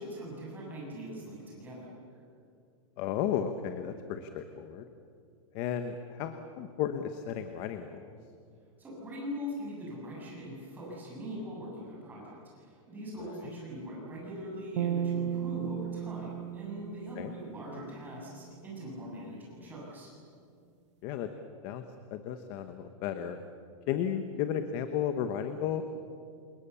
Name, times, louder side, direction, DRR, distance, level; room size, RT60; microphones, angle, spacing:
voice 1, 0.0-1.9 8.8-20.1, equal, 10° right, -4 dB, 7.4 m, -41 dB
voice 2, 3.0-4.9 5.5-8.0 17.2-17.3 21.0-21.3 21.6-21.8 22.1-23.4 23.9-25.8, left 9 dB, 30° left, 8 dB, 1.1 m, -33 dB
sound 1, 14.8-18.1, right 9 dB, 60° right, 0.8 m, -35 dB
29.0 x 27.5 x 7.0 m, 2.4 s
supercardioid pair, 175°, 17 cm